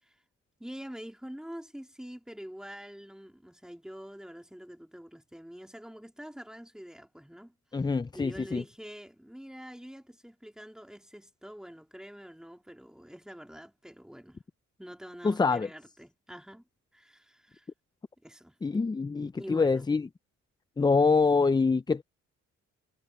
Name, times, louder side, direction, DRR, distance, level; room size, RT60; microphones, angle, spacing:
voice 1, 0.6-7.8 8.1-14.4 14.8-17.7 18.2-18.6 19.4-19.8, equal, ahead, 3.5 m, -46 dB
voice 2, 7.7-8.6 15.2-15.7 18.6-20.1 20.8-22.0, left 4 dB, 15° left, 0.5 m, -25 dB
cardioid pair, 90°, 30 cm